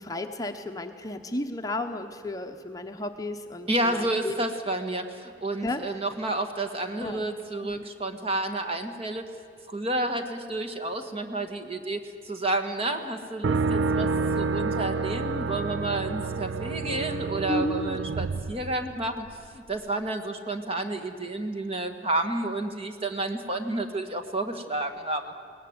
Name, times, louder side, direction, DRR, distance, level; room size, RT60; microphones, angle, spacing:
voice 1, 0.0-4.4 5.6-5.8 7.0-7.3 7.6-7.8 17.5-18.0, left 1 dB, 20° left, 5 dB, 0.9 m, -33 dB
voice 2, 3.7-9.3 9.7-14.1 14.3-19.3 19.5-25.3, right 2 dB, 30° right, 6 dB, 1.6 m, -30 dB
sound 1, 13.4-19.3, right 4 dB, 75° right, 0.5 m, -29 dB
22.0 x 19.0 x 9.5 m, 2.4 s
head